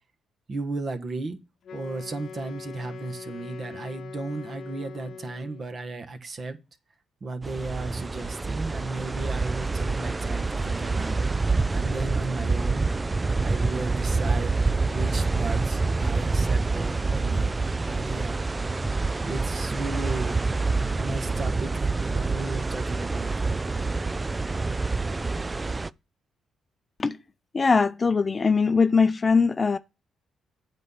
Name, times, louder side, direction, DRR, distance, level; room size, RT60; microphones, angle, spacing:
voice 1, 0.5-1.4 1.7-6.6 7.2-12.9 13.4-14.5 14.9-18.6 19.2-20.4 20.9-23.3, right 3 dB, 40° right, 1.4 m, -35 dB
Wind instrument woodwind instrument, 1.6-5.8, left 6 dB, 60° left, 0.9 m, -42 dB
sound 1, 7.4-25.9, right 3 dB, 20° right, 0.3 m, -27 dB
voice 2, 27.5-29.8, left 4 dB, 30° left, 0.6 m, -21 dB
8.5 x 4.2 x 6.8 m
cardioid pair, 90°, 0 cm